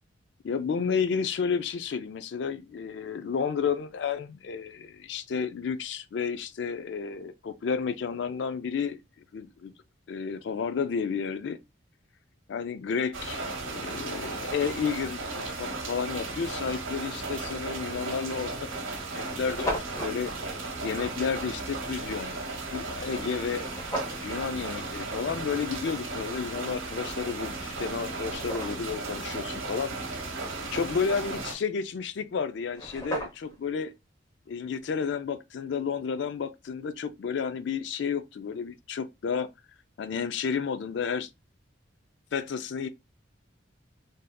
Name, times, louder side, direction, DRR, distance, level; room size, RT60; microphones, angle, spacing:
voice 1, 0.4-9.0 9.3-9.7 10.1-11.6 12.5-20.3 20.8-22.4 22.7-23.6 24.2-29.9 30.7-33.9 34.5-39.5 40.0-41.3 42.3-42.9, left 6 dB, 60° left, 0.3 m, -31 dB
sound 1, 13.1-31.5, right 3 dB, 85° right, 1.0 m, -35 dB
sound 2, 19.3-20.2 23.6-24.3 27.2-27.3 27.8-29.0 32.3-32.4 32.6-33.6, equal, 15° left, 0.9 m, -35 dB
3.4 x 2.6 x 2.2 m
head